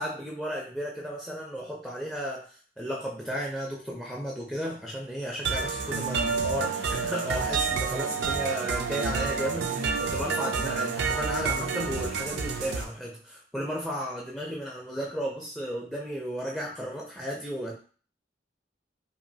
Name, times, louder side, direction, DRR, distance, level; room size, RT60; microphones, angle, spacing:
voice 1, 0.0-17.7, equal, ahead, -3 dB, 0.4 m, -34 dB
sound 1, 5.4-12.8, right 5 dB, 70° right, 0.4 m, -29 dB
3.0 x 2.4 x 2.6 m, 0.41 s
head